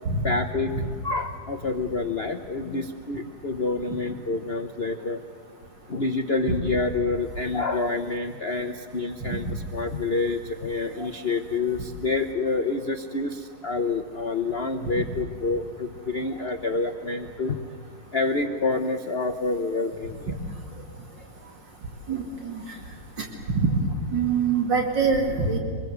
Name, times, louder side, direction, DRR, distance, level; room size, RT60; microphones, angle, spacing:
voice 1, 0.2-5.2 5.9-17.6 18.1-20.4, left 3 dB, 40° left, 5 dB, 1.0 m, -28 dB
voice 2, 22.1-22.6 23.5-25.6, right 4 dB, 65° right, 1 dB, 3.2 m, -24 dB
25.5 x 21.5 x 8.1 m, 2.1 s
omnidirectional pair, 2.1 m